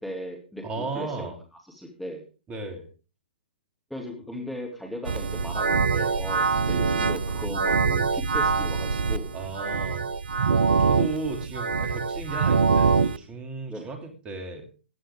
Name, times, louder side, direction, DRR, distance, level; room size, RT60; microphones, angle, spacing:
voice 1, 0.0-1.3 1.7-2.3 3.9-9.3 11.9-12.0 13.7-13.9, equal, ahead, 0 dB, 2.6 m, -37 dB
voice 2, 0.6-1.3 2.5-2.8 9.3-10.0 10.8-14.7, right 3 dB, 20° right, 4 dB, 2.8 m, -35 dB
sound 1, 5.0-13.2, right 5 dB, 65° right, 0.7 m, -24 dB
16.0 x 11.0 x 3.6 m, 0.35 s
figure-of-eight pair, 120°, 6 cm